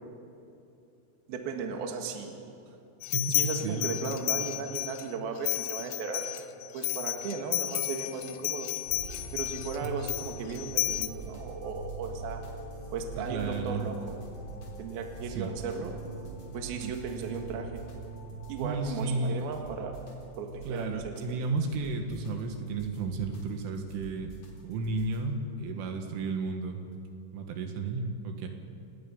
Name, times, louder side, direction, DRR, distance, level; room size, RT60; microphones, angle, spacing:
voice 1, 1.3-2.4 3.3-6.2 6.7-8.7 9.3-12.4 12.9-14.2 14.8-15.9 16.5-17.8 18.5-20.0 20.4-21.2, right 5 dB, 60° right, 3 dB, 3.1 m, -36 dB
sound 1, 3.0-5.1 5.5-11.1, left 16 dB, 90° left, 3.6 m, -32 dB
voice 2, 3.1-4.0 9.8-10.0 13.2-13.9 15.3-15.5 16.8-16.9 18.6-19.4 20.7-24.3 24.6-26.8 27.3-28.5, right 3 dB, 75° right, 4 dB, 4.0 m, -33 dB
sound 2, 8.9-25.3, right 3 dB, 35° left, 4.4 m, -43 dB
28.0 x 19.5 x 5.5 m, 2.7 s
omnidirectional pair, 5.9 m